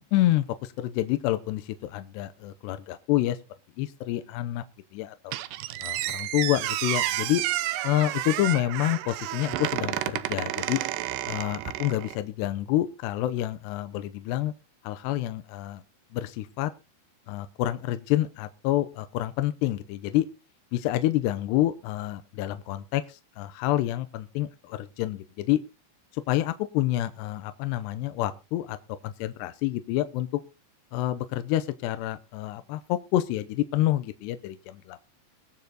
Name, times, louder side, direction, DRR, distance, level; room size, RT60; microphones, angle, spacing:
voice 1, 0.1-3.4 3.8-4.6 4.9-5.4 5.8-7.4 7.8-10.8 11.3-14.5 14.8-15.8 16.1-16.7 17.3-20.3 20.7-25.6 26.1-28.8 29.0-30.4 30.9-34.6, left 14 dB, 80° left, 11 dB, 2.8 m, -28 dB
Squeak, 5.3-12.2, right 15 dB, 75° right, 2.7 m, -31 dB
21.5 x 7.4 x 3.9 m, 0.31 s
omnidirectional pair, 5.0 m